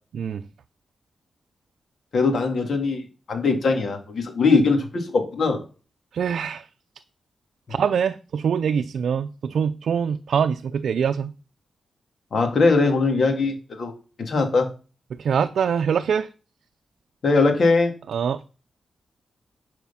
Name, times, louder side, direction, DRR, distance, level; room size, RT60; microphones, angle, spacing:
voice 1, 2.1-5.6 12.3-13.9 14.2-14.7 17.2-17.9, left 3 dB, 65° left, 2.8 m, -21 dB
voice 2, 6.1-6.7 7.7-11.3 15.2-16.3 18.1-18.4, right 7 dB, 80° right, 0.5 m, -24 dB
11.0 x 5.0 x 5.8 m
cardioid pair, 80°, 0 cm